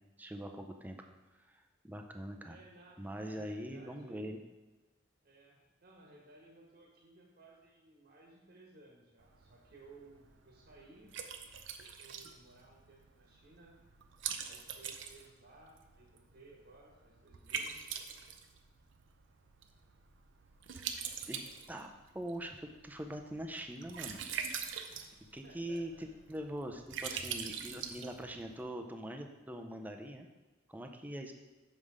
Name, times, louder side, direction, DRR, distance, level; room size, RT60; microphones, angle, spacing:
voice 1, 0.2-1.0 1.5-2.6 3.0-4.4 20.7-20.9 21.3-21.9 22.1-24.2 25.3-30.3 30.7-31.3, right 1 dB, 10° right, 4 dB, 0.5 m, -43 dB
voice 2, 2.5-4.3 5.2-11.2 12.0-13.7 14.4-18.0 24.9-25.1 25.4-26.1 31.1-31.3, right 2 dB, 50° right, -2 dB, 1.2 m, -59 dB
Liquid, 9.2-28.6, right 7 dB, 75° right, 0.6 m, -44 dB
6.5 x 5.6 x 4.9 m, 1.2 s
head